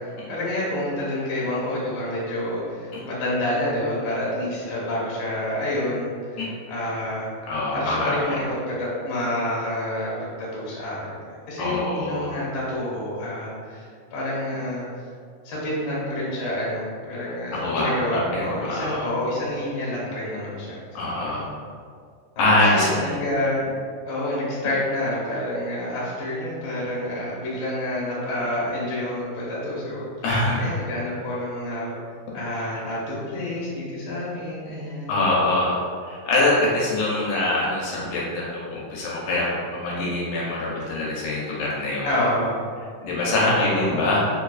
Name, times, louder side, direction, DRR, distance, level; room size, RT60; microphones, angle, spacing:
voice 1, 0.0-7.3 7.7-11.1 11.5-14.9 15.4-21.4 22.5-23.6 24.0-30.1 30.6-31.9 32.3-35.1 42.0-42.6 43.5-43.9, left 1 dB, 60° left, -6 dB, 1.3 m, -28 dB
voice 2, 7.5-8.4 11.6-12.3 17.5-19.1 21.0-21.5 22.4-23.2 30.2-30.7 35.1-35.8 36.1-42.1 43.0-44.2, left 2 dB, 80° left, -5 dB, 2.1 m, -24 dB
5.0 x 2.3 x 2.3 m, 2.1 s
omnidirectional pair, 3.8 m